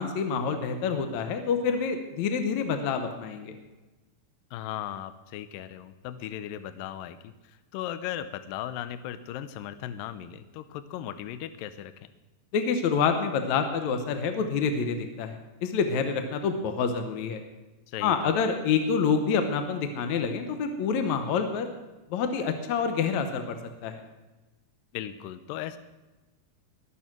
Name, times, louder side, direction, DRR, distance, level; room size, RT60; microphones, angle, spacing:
voice 1, 0.0-3.5 12.5-17.4 18.0-21.7 22.1-24.0, left 6 dB, 65° left, 7 dB, 2.0 m, -27 dB
voice 2, 4.5-11.9 17.9-18.4 24.9-25.8, left 11 dB, 85° left, 12 dB, 2.3 m, -37 dB
21.5 x 7.1 x 6.1 m, 1.1 s
omnidirectional pair, 4.1 m